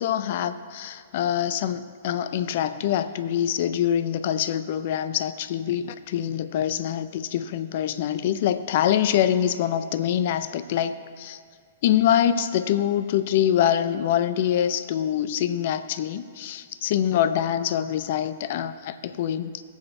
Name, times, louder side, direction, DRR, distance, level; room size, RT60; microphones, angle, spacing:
voice 1, 0.0-11.4 11.8-19.6, left 10 dB, 55° left, 13 dB, 0.5 m, -25 dB
20.0 x 7.2 x 2.7 m, 2.1 s
hypercardioid pair, 115°, 0 cm